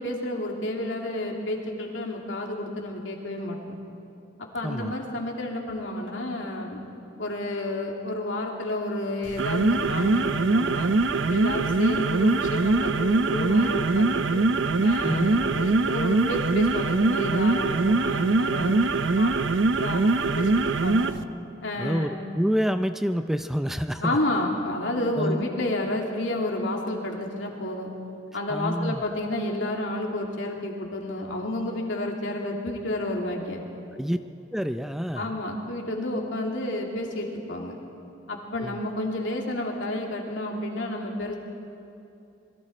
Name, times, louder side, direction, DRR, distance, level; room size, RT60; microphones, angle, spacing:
voice 1, 0.0-3.7 4.5-6.9 7.2-10.9 11.3-14.4 14.8-20.5 20.8-21.1 21.6-22.1 24.0-27.9 28.3-33.6 35.2-37.8 38.3-41.4, left 1 dB, 75° left, 0 dB, 2.8 m, -30 dB
voice 2, 4.6-4.9 15.0-15.3 21.8-24.2 25.2-25.4 28.5-29.0 34.0-34.2 34.5-35.3 38.6-38.8, equal, ahead, 9 dB, 0.4 m, -27 dB
sound 1, 9.2-21.2, right 3 dB, 75° right, 0.6 m, -23 dB
27.0 x 22.0 x 4.3 m, 2.7 s
head